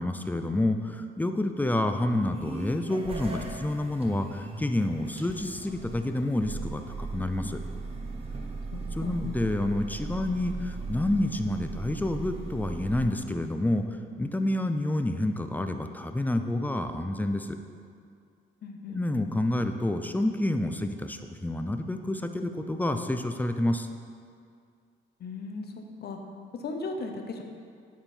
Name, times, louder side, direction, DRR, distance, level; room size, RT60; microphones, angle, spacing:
voice 1, 0.0-7.6 9.0-13.9 14.2-17.6 18.9-23.9, left 1 dB, 10° left, 6 dB, 0.4 m, -28 dB
sound 1, 2.1-13.0, right 3 dB, 30° right, 1.0 m, -38 dB
voice 2, 8.7-9.2 18.6-19.0 25.2-25.7 26.0-26.2 26.6-27.4, left 3 dB, 55° left, 4 dB, 0.8 m, -37 dB
9.6 x 3.7 x 4.4 m, 2.2 s
cardioid pair, 90°, 20 cm